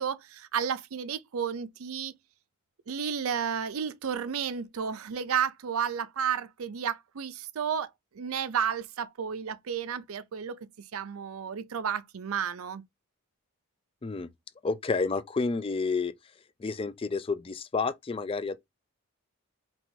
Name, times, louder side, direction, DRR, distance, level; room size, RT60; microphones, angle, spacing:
voice 1, 0.0-2.1 2.9-7.9 8.1-12.8, right 7 dB, 85° right, 0.5 m, -32 dB
voice 2, 14.6-16.1 16.6-18.6, left 4 dB, 25° left, 0.4 m, -30 dB
4.7 x 3.0 x 2.7 m
head